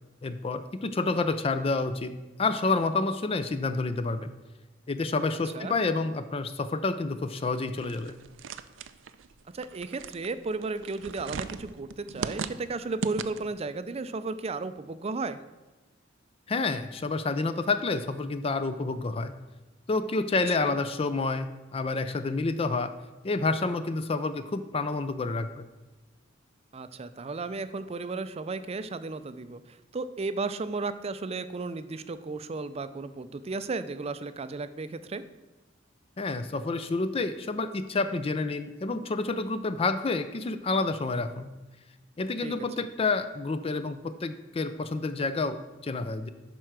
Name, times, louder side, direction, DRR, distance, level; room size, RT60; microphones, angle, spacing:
voice 1, 0.2-4.3 4.9-8.1 16.5-19.3 19.9-22.9 23.2-25.6 36.2-41.5 42.2-46.3, left 3 dB, 30° left, 11 dB, 0.4 m, -29 dB
sound 1, 7.8-13.6, right 5 dB, 85° right, 0.5 m, -38 dB
voice 2, 9.5-15.4 20.6-20.8 26.7-35.2 42.4-42.5, right 3 dB, 35° right, 12 dB, 0.4 m, -34 dB
11.0 x 4.5 x 6.0 m, 1.1 s
head